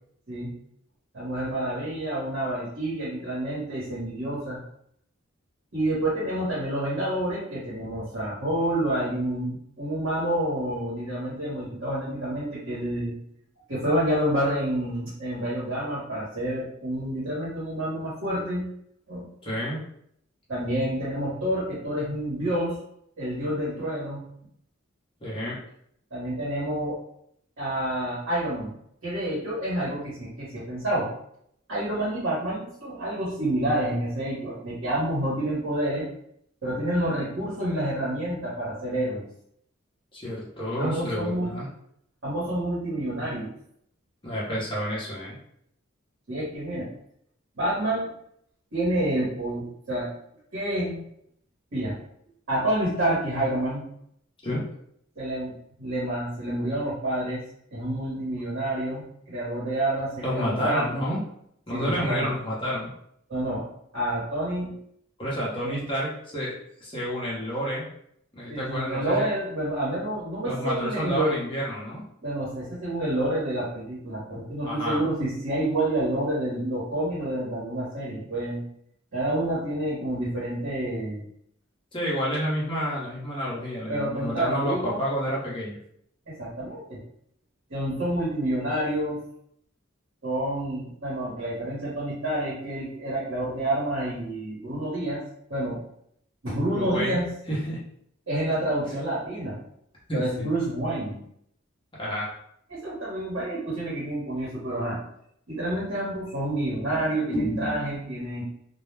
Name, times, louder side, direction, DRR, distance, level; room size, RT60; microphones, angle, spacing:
voice 1, 1.1-4.6 5.7-13.2 13.7-18.7 19.1-19.3 20.5-22.7 23.2-24.3 26.1-27.0 27.6-28.8 29.0-31.1 31.7-36.1 36.6-39.2 40.8-41.5 42.2-43.5 46.3-46.9 47.6-48.1 48.7-50.1 50.5-51.0 51.7-51.9 52.5-53.9 55.2-55.5 55.8-57.4 57.7-60.9 61.7-62.3 63.3-63.7 63.9-64.7 65.6-65.8 68.5-71.3 72.2-78.6 79.1-81.2 83.9-85.0 86.3-87.0 87.7-89.2 90.2-95.2 95.5-95.8 96.4-97.2 98.3-99.6 100.1-101.2 102.7-105.0 105.5-108.4, right 1 dB, 60° right, -7 dB, 1.0 m, -28 dB
voice 2, 19.4-19.8 25.2-25.6 40.1-41.7 44.2-45.4 54.4-54.7 60.2-61.2 61.7-62.9 65.2-66.5 66.8-67.8 68.3-69.2 70.4-72.0 74.6-75.0 81.9-85.8 96.7-97.2 97.5-97.8 100.1-100.5 101.9-102.3 106.9-108.0, equal, 25° left, -7 dB, 0.7 m, -29 dB
2.2 x 2.1 x 3.2 m, 0.70 s
head